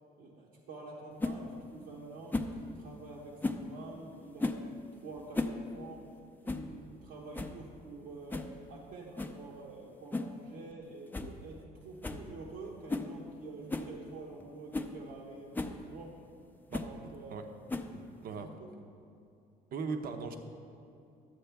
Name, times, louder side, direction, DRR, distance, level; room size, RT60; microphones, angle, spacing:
voice 1, 0.2-6.1 6.4-16.2 16.8-17.3 18.3-18.7, right 3 dB, 85° right, -5 dB, 1.2 m, -48 dB
sound 1, 1.2-1.4 2.3-2.6 3.4-3.7 4.4-4.7 5.2-5.6 5.9-6.0 6.5-6.7 7.0-7.1 7.3-7.6 8.3-8.5 9.2-9.4 10.1-10.4 10.7-10.8 11.1-11.3 11.6-11.7 12.0-12.3 12.9-13.1 13.7-13.9 14.4-14.5 14.7-14.9 15.5-15.8 16.7-16.9 17.7-18.1, left 2 dB, 10° left, 0.5 m, -35 dB
voice 2, 17.9-18.6 19.7-20.4, right 4 dB, 60° right, 6 dB, 0.8 m, -39 dB
11.5 x 7.8 x 3.5 m, 2.6 s
cardioid pair, 110°, 17 cm